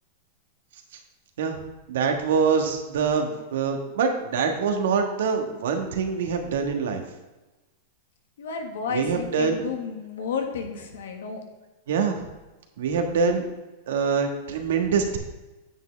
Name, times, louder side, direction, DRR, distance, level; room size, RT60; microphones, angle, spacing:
voice 1, 1.9-7.0 8.9-9.6 11.9-12.2 12.8-13.4 13.9-15.2, right 5 dB, 75° right, 4 dB, 1.4 m, -24 dB
voice 2, 8.4-11.4, left 5 dB, 80° left, 3 dB, 1.6 m, -31 dB
9.0 x 7.3 x 3.4 m, 1.1 s
hypercardioid pair, 130°, 0 cm